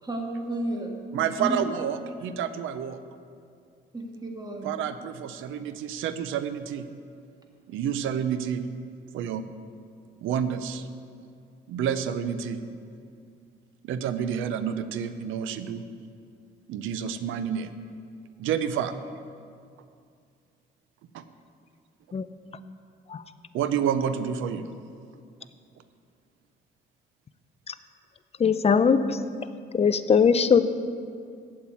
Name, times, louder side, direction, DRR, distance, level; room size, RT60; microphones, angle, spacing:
voice 1, 0.0-1.7 3.9-4.7, right 1 dB, 20° right, 1.9 m, -32 dB
voice 2, 1.1-3.0 4.6-6.9 7.7-8.6 9.1-9.4 10.2-10.9 11.7-12.6 13.8-15.8 16.7-17.7 18.4-18.9 21.1-21.2 23.5-24.7, right 8 dB, 85° right, 0.6 m, -29 dB
voice 3, 28.4-29.2 29.7-30.6, left 6 dB, 30° left, 0.6 m, -20 dB
8.7 x 7.4 x 8.5 m
cardioid pair, 90°, 20 cm